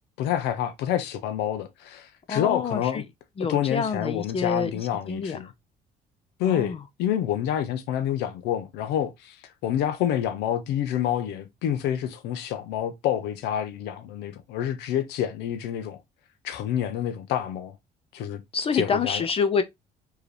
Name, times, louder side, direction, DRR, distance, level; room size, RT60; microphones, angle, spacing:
voice 1, 0.2-3.0 3.5-5.5 6.4-9.4 9.6-16.0 16.4-17.7 18.1-18.4 18.7-19.3, left 10 dB, 90° left, 0.8 m, -28 dB
voice 2, 2.3-3.0 3.4-5.4 6.4-6.8 18.5-19.6, left 5 dB, 35° left, 0.6 m, -27 dB
4.6 x 3.0 x 3.3 m
cardioid pair, 110°, 17 cm